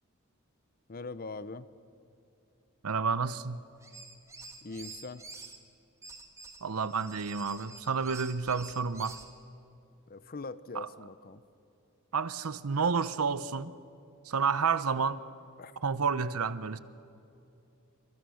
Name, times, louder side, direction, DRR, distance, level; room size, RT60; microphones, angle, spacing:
voice 1, 0.9-1.7 4.6-5.2 10.1-11.4 15.6-15.7, left 3 dB, 40° left, 0.7 m, -42 dB
voice 2, 2.8-3.6 6.6-9.2 10.7-10.9 12.1-13.7 14.2-15.2 15.8-16.8, right 5 dB, 90° right, 0.8 m, -30 dB
sound 1, 3.8-5.6 6.0-9.3, right 3 dB, 15° right, 1.6 m, -48 dB
28.0 x 24.5 x 6.4 m
head